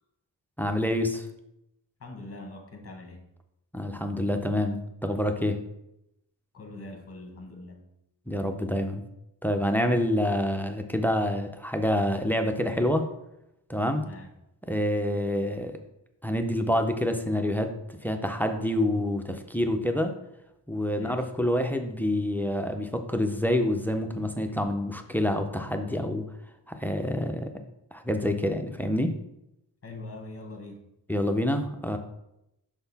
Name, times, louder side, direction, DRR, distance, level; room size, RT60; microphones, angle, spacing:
voice 1, 0.6-1.3 3.7-5.6 8.3-9.0 9.4-13.1 13.7-14.0 14.7-15.7 16.2-20.1 20.7-26.3 26.7-27.5 27.9-29.1 31.1-32.0, left 1 dB, 5° left, 6 dB, 0.4 m, -27 dB
voice 2, 2.0-3.3 6.5-7.9 14.0-14.3 20.9-21.3 29.8-30.8, left 2 dB, 35° left, 3 dB, 1.2 m, -43 dB
6.0 x 4.0 x 4.0 m, 0.84 s
wide cardioid pair, 115°, 43 cm